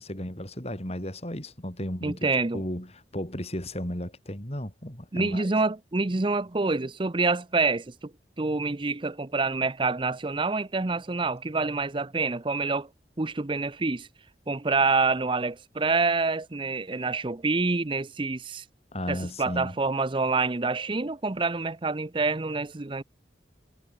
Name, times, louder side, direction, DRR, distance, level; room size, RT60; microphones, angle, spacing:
voice 1, 0.0-5.5 18.9-19.8, equal, 35° left, 6.1 m, -35 dB
voice 2, 2.0-2.6 5.1-8.1 8.4-12.9 13.2-14.1 14.5-18.6 19.1-23.0, right 3 dB, 30° right, 0.6 m, -27 dB
head